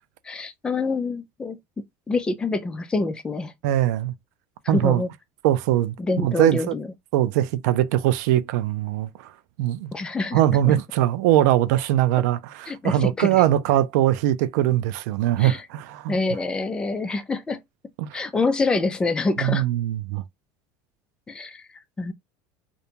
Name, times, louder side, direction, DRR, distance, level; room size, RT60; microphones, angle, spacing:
voice 1, 0.2-1.6 2.1-3.5 4.6-5.1 6.0-6.9 9.9-10.4 10.6-10.7 12.7-13.4 15.3-15.6 16.1-17.6 18.1-19.6 21.3-21.7 22.0-22.1, left 3 dB, 10° left, 0.3 m, -26 dB
voice 2, 3.6-4.1 4.7-5.0 5.4-5.9 6.2-6.7 7.1-9.3 9.6-9.9 10.3-16.2 18.0-18.2 19.4-20.2, right 13 dB, 85° right, 0.4 m, -21 dB
2.5 x 2.2 x 2.8 m
cardioid pair, 150°, 9 cm